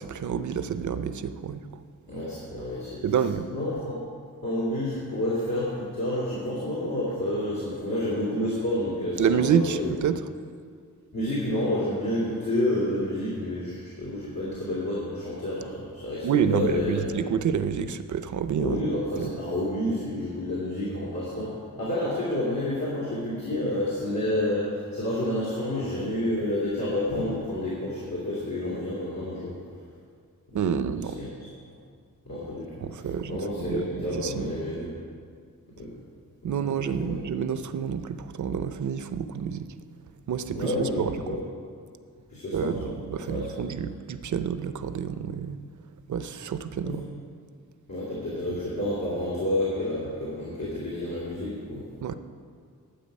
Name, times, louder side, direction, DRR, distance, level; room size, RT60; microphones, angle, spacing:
voice 1, 0.0-1.6 3.0-3.5 9.2-10.2 16.2-18.9 19.2-19.3 30.5-31.2 32.8-34.5 36.4-39.7 40.3-41.4 42.5-45.6 46.1-47.1 52.0-52.1, right 7 dB, 55° right, 11 dB, 0.6 m, -28 dB
voice 2, 2.1-3.0 3.5-4.0 4.4-9.9 11.1-17.0 18.6-29.6 30.5-30.6 31.2-31.3 32.2-32.7 33.3-34.9 35.7-36.0 36.4-37.2 40.5-41.4 42.3-42.9 43.2-43.6 46.8-47.0 47.9-51.9, left 1 dB, 80° left, -8 dB, 2.9 m, -29 dB
12.0 x 7.6 x 5.4 m, 2.2 s
wide cardioid pair, 95°, 35 cm